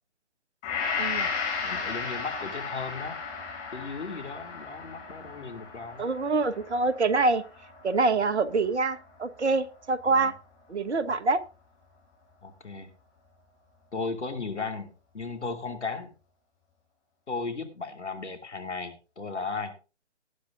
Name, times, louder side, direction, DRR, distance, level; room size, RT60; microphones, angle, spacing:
Gong, 0.6-8.9 9.4-9.5, left 5 dB, 20° left, 7.1 m, -35 dB
voice 1, 1.0-1.3 6.0-7.4 7.8-10.3 10.7-11.4, right 3 dB, 70° right, 1.2 m, -25 dB
voice 2, 1.6-3.2 3.7-6.1 10.0-10.3 12.4-12.9 13.9-16.1 17.3-19.7, left 4 dB, 75° left, 2.6 m, -36 dB
19.5 x 10.5 x 2.5 m
figure-of-eight pair, 145°, 35 cm